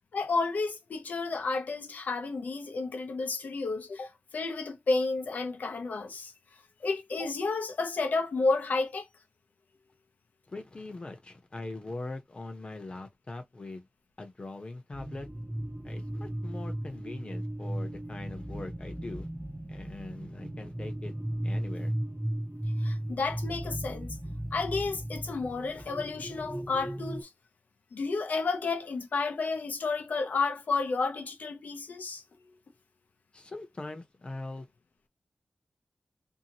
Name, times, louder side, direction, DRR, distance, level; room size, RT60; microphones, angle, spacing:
voice 1, 0.1-6.3 6.8-9.1 22.8-24.2 24.5-27.3 27.9-32.2, left 3 dB, 90° left, 0.7 m, -31 dB
voice 2, 10.5-13.9 14.2-15.3 15.8-19.3 19.7-21.1 21.4-21.9 33.3-34.7, left 2 dB, 40° left, 0.8 m, -42 dB
sound 1, 14.9-27.2, right 1 dB, 10° right, 0.5 m, -36 dB
2.8 x 2.4 x 2.9 m
wide cardioid pair, 85°, 3 cm